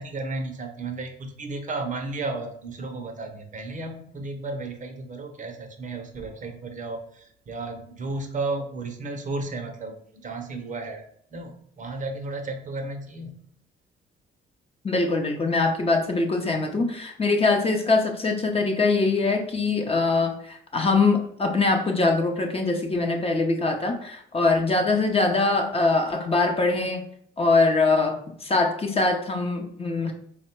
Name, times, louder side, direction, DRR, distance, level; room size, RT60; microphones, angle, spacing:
voice 1, 0.0-11.0 11.3-13.5, right 3 dB, 40° right, 5 dB, 0.6 m, -33 dB
voice 2, 14.8-27.0 27.4-30.1, left 3 dB, 30° left, 3 dB, 0.6 m, -23 dB
3.5 x 2.1 x 4.3 m, 0.64 s
cardioid pair, 90°, 20 cm